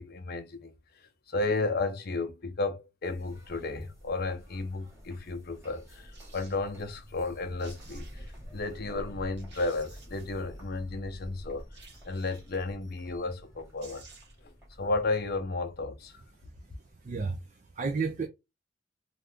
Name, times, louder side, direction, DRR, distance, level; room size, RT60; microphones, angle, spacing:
voice 1, 0.0-8.3 8.5-14.1 14.4-16.2, left 3 dB, 50° left, 0.6 m, -33 dB
sound 1, 3.0-17.4, equal, 15° right, 1.4 m, -49 dB
sound 2, 6.1-6.6 7.3-7.4 7.6-8.4 8.9-9.0 9.4-10.4 11.7-12.6 13.5-13.6 13.8-14.5 14.8-14.9, right 4 dB, 60° right, 1.1 m, -54 dB
voice 2, 16.9-18.3, right 4 dB, 40° right, 0.4 m, -33 dB
2.7 x 2.4 x 3.3 m
head